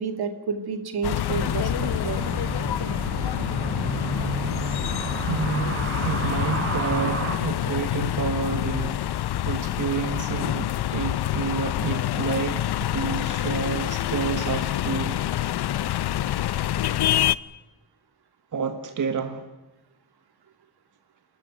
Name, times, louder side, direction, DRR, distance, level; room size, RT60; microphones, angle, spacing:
voice 1, 0.0-2.3, right 5 dB, 80° right, 8 dB, 2.7 m, -30 dB
sound 1, 1.0-17.3, left 12 dB, 85° left, 0.7 m, -27 dB
sound 2, 1.4-7.4, right 2 dB, 35° right, 5.5 m, -31 dB
voice 2, 5.3-9.1 9.4-15.1 18.5-19.5, right 6 dB, 55° right, 7 dB, 1.7 m, -30 dB
28.5 x 13.0 x 9.3 m, 1.1 s
cardioid pair, 95°, 38 cm